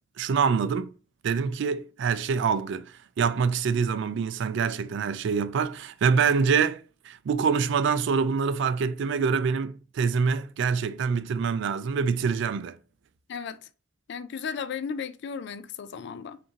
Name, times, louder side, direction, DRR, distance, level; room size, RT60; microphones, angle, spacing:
voice 1, 0.2-0.9 1.2-12.8, right 5 dB, 65° right, 0.3 m, -25 dB
voice 2, 13.3-13.6 14.1-16.4, left 6 dB, 60° left, 0.4 m, -35 dB
5.0 x 2.6 x 2.8 m
head